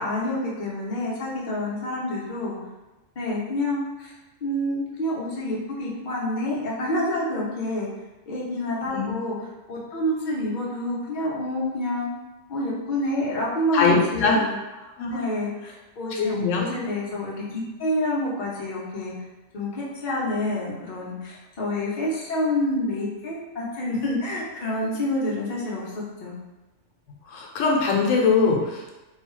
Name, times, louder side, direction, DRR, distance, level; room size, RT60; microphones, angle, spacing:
voice 1, 0.0-2.6 3.2-4.1 4.4-7.9 8.3-9.4 9.7-12.1 12.5-14.6 15.1-19.1 19.5-26.3, left 1 dB, 45° left, -5 dB, 0.7 m, -28 dB
voice 2, 13.7-14.4 15.0-15.2 16.1-16.6 27.3-28.9, left 4 dB, 80° left, 0 dB, 1.0 m, -22 dB
2.7 x 2.2 x 3.0 m, 1.1 s
omnidirectional pair, 1.3 m